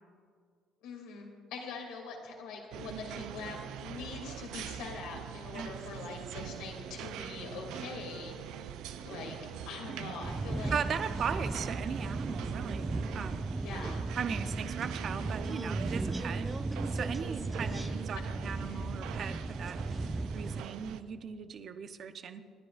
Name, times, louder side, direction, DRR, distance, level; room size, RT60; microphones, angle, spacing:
voice 1, 0.8-9.4 9.7-10.8 13.6-14.1 17.6-18.0 18.6-18.9, left 4 dB, 80° left, 0 dB, 2.6 m, -44 dB
sound 1, 2.7-21.0, right 10 dB, 75° right, 0.5 m, -43 dB
sound 2, 10.2-20.6, right 3 dB, 20° right, 0.4 m, -36 dB
voice 2, 10.7-13.4 14.2-16.5 16.9-19.8 20.3-22.4, right 7 dB, 55° right, 9 dB, 0.8 m, -38 dB
28.5 x 10.5 x 2.5 m, 2.1 s
supercardioid pair, 80°, 0 cm